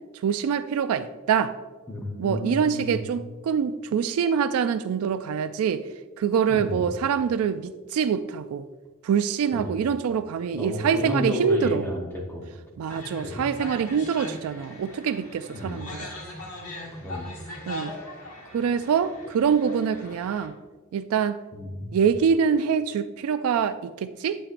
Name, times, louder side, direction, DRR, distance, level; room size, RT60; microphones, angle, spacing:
voice 1, 0.2-1.6 2.2-5.8 6.2-8.7 9.0-11.9 12.8-16.1 17.7-17.9 18.5-20.6 20.9-21.4 21.9-24.4, right 7 dB, 75° right, 11 dB, 0.3 m, -25 dB
voice 2, 1.9-3.0 6.5-6.9 9.6-9.8 10.5-12.5 13.2-13.5 15.5-15.9 17.0-17.3 21.5-21.9, left 1 dB, 10° left, -2 dB, 1.0 m, -31 dB
sound 1, 12.9-20.5, left 1 dB, 80° left, 1.7 m, -40 dB
8.7 x 8.3 x 2.5 m, 1.3 s
head